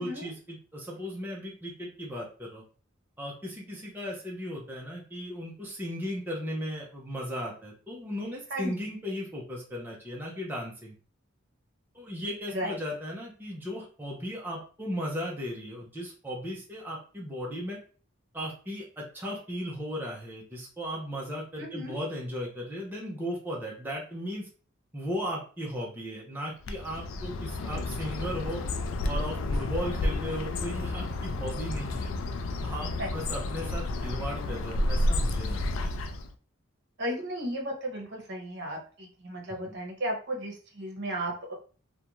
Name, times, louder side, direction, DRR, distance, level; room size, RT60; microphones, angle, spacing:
voice 1, 0.0-2.6 3.2-10.9 11.9-17.8 18.3-24.5 24.9-28.6 29.1-32.1 32.6-35.9, equal, 10° right, -3 dB, 0.5 m, -36 dB
voice 2, 12.5-12.8 21.6-22.0 33.0-33.1 37.0-41.5, equal, 60° right, 0 dB, 0.8 m, -34 dB
Bird, 26.6-36.3, left 2 dB, 75° left, 0.3 m, -31 dB
2.5 x 2.2 x 2.9 m, 0.40 s
head